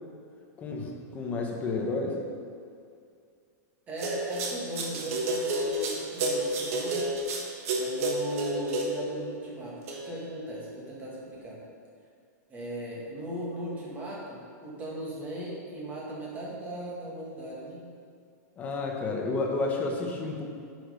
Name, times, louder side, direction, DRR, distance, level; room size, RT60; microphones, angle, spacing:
voice 1, 0.6-2.2 18.6-20.4, left 3 dB, 15° left, 1 dB, 1.1 m, -31 dB
voice 2, 3.9-7.0 7.8-9.8 10.0-11.6 12.5-17.8, right 1 dB, 15° right, -5 dB, 1.9 m, -37 dB
sound 1, 4.0-9.1 9.9-10.3, right 1 dB, 55° right, 1.4 m, -30 dB
9.5 x 6.3 x 5.2 m, 2.3 s
supercardioid pair, 170°, 9 cm